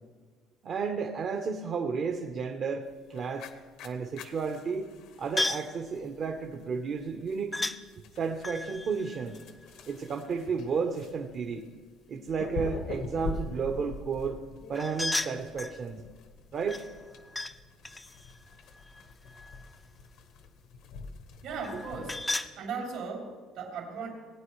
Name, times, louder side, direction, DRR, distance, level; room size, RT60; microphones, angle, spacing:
voice 1, 0.6-3.5 3.8-4.9 5.2-7.7 8.1-9.4 9.9-11.7 12.1-14.4 14.7-16.0 16.5-16.8, right 5 dB, 45° right, 3 dB, 0.9 m, -32 dB
sound 1, 2.9-22.2, left 4 dB, 70° left, 1.1 m, -44 dB
sound 2, 5.4-5.8 7.5-7.8 8.4-10.2 14.7-15.8 16.7-17.6 17.8-19.7 21.6-22.5, left 2 dB, 10° left, 0.5 m, -35 dB
voice 2, 21.4-22.3 22.6-24.1, right 5 dB, 75° right, 0 dB, 3.3 m, -37 dB
19.0 x 9.1 x 3.2 m, 1.4 s
cardioid pair, 125°, 0 cm